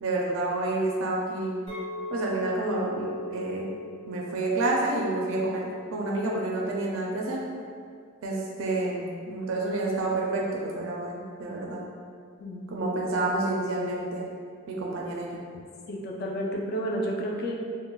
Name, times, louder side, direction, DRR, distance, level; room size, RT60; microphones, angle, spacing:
voice 1, 0.0-1.6 2.1-3.7 4.1-7.5 8.2-11.8 12.7-14.3 14.7-15.4, right 2 dB, 65° right, -2 dB, 0.4 m, -29 dB
Chink clink, 1.7-6.9, left 2 dB, 65° left, 1.1 m, -40 dB
voice 2, 12.4-12.9 15.9-17.5, equal, 45° left, -1 dB, 0.4 m, -31 dB
3.8 x 2.1 x 2.2 m, 2.2 s
head